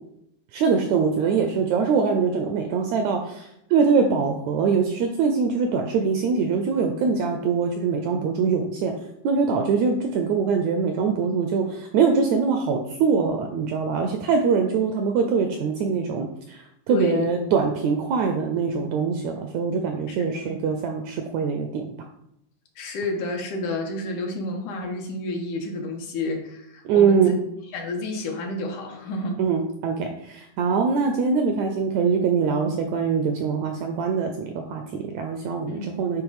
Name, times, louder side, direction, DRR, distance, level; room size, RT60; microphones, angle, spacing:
voice 1, 0.5-8.9 9.2-16.6 16.9-21.9 26.8-27.4 29.4-36.2, right 5 dB, 80° right, 5 dB, 1.7 m, -23 dB
voice 2, 16.9-17.3 20.1-20.6 22.8-27.3 27.7-29.4 35.7-35.9, left 2 dB, 75° left, 2 dB, 2.4 m, -30 dB
9.8 x 3.6 x 4.8 m, 0.77 s
omnidirectional pair, 3.8 m